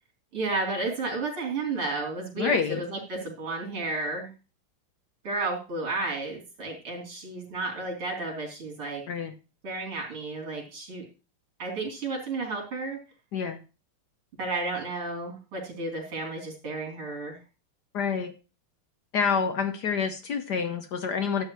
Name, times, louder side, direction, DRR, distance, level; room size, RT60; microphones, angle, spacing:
voice 1, 0.3-4.3 5.2-9.0 9.6-11.0 11.6-13.0 14.4-17.4, right 3 dB, 80° right, -1 dB, 4.1 m, -32 dB
voice 2, 2.4-2.8 9.1-9.3 13.3-13.6 17.9-18.3 19.1-21.4, left 6 dB, 65° left, 8 dB, 1.1 m, -27 dB
12.5 x 8.2 x 3.0 m, 0.32 s
omnidirectional pair, 2.4 m